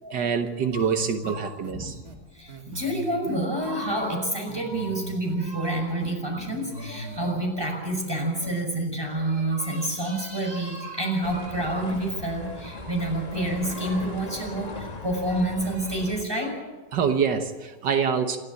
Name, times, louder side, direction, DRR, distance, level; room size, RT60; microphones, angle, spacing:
voice 1, 0.1-1.9 16.9-18.4, right 6 dB, 85° right, 6 dB, 1.9 m, -25 dB
sound 1, 0.7-1.3 1.6-1.7 2.1-2.2 2.5-4.1 4.5-5.3 5.6-7.3 7.6-8.1 8.4-8.6, right 1 dB, 55° right, 2.8 m, -40 dB
voice 2, 2.3-16.7, right 1 dB, 15° right, 1 dB, 6.1 m, -28 dB
sound 2, 11.2-16.2, left 2 dB, 25° left, 1.4 m, -39 dB
27.0 x 13.0 x 8.5 m, 1.2 s
omnidirectional pair, 1.8 m